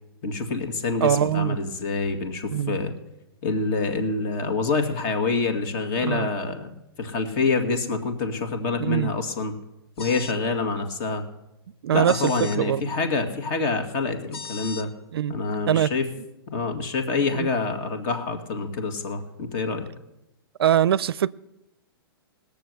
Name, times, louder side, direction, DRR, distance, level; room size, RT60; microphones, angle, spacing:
voice 1, 0.2-2.9 3.4-6.7 7.0-9.5 10.0-11.2 11.9-14.9 15.3-16.1 16.5-19.9, left 4 dB, 40° left, 2.1 m, -26 dB
voice 2, 1.0-1.6 2.5-2.8 6.0-6.3 8.8-9.1 11.8-12.8 15.1-15.3 15.7-15.9 17.3-17.5 20.6-21.3, right 10 dB, 75° right, 0.4 m, -22 dB
sound 1, 10.0-10.4 12.0-12.6 14.3-14.9, left 4 dB, 75° left, 1.2 m, -37 dB
18.0 x 7.0 x 8.0 m
hypercardioid pair, 125°, 13 cm